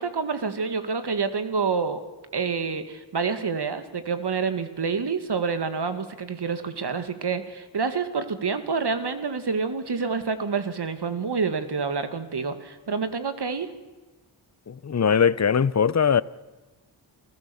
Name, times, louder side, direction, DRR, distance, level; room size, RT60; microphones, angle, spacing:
voice 1, 0.0-2.0 2.3-13.7, right 5 dB, 50° right, 2.2 m, -28 dB
voice 2, 14.7-16.2, left 7 dB, 35° left, 0.8 m, -21 dB
28.5 x 16.0 x 7.1 m
cardioid pair, 45°, 50 cm